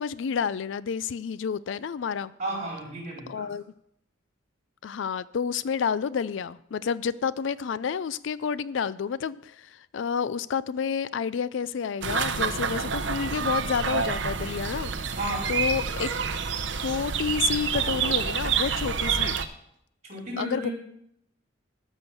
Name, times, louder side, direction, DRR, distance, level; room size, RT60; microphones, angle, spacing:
voice 1, 0.0-2.3 3.3-3.6 4.8-14.9 15.5-16.1 16.8-19.4 20.4-20.7, left 6 dB, 70° left, 0.4 m, -30 dB
voice 2, 2.4-3.5 15.2-15.6 20.0-20.7, right 1 dB, 35° right, 4.6 m, -33 dB
sound 1, 12.0-19.4, right 6 dB, 65° right, 0.8 m, -28 dB
13.0 x 6.4 x 6.9 m
head